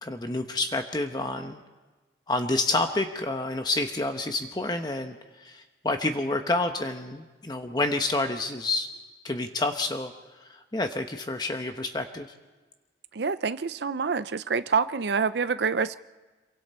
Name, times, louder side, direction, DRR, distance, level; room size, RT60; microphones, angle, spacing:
voice 1, 0.0-1.6 2.3-8.9 9.2-10.1 10.4-12.3, left 2 dB, 25° left, 0.9 m, -29 dB
voice 2, 13.1-16.0, right 5 dB, 70° right, 0.5 m, -27 dB
27.0 x 23.5 x 4.3 m
head